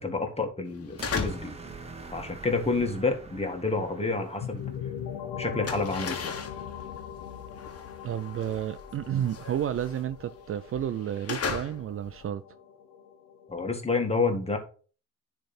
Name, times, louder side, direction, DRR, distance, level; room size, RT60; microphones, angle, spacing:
voice 1, 0.0-1.5 2.1-4.6 5.4-6.3 13.5-14.6, left 3 dB, 20° left, 1.7 m, -29 dB
sound 1, 0.7-1.6 1.9-4.8 5.1-12.3, left 5 dB, 50° left, 1.4 m, -37 dB
sound 2, 1.0-5.3, right 3 dB, 20° right, 1.4 m, -45 dB
sound 3, 4.4-14.0, left 9 dB, 85° left, 0.7 m, -41 dB
voice 2, 8.0-12.4, right 10 dB, 45° right, 0.4 m, -31 dB
10.0 x 3.4 x 4.2 m
cardioid pair, 90°, 30 cm